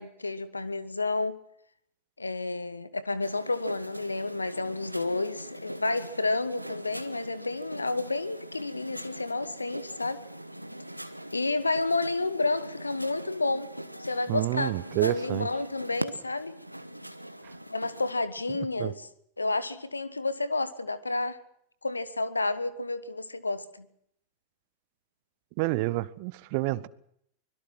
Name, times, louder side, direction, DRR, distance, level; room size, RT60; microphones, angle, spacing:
voice 1, 0.0-1.4 2.2-10.2 11.3-13.7 14.0-16.5 17.7-19.1 19.4-21.4 21.8-23.9, left 3 dB, 80° left, 1.3 m, -30 dB
sound 1, 3.2-18.1, right 1 dB, 90° right, 1.2 m, -42 dB
voice 2, 14.3-15.5 18.8-18.9 25.6-26.9, right 20 dB, 45° right, 1.0 m, -28 dB
24.5 x 21.5 x 6.2 m
figure-of-eight pair, 90°, 0 cm